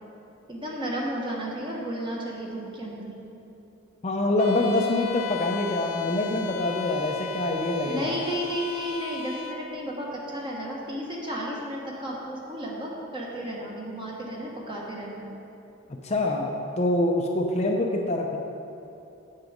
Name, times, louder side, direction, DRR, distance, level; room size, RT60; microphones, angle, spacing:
voice 1, 0.5-3.1 7.8-15.3, equal, 25° right, -3 dB, 1.4 m, -33 dB
voice 2, 4.0-8.1 16.0-18.4, left 2 dB, 30° left, 1 dB, 0.6 m, -25 dB
Bowed string instrument, 4.4-9.7, left 7 dB, 75° left, 0.6 m, -37 dB
8.3 x 7.9 x 5.1 m, 2.8 s
head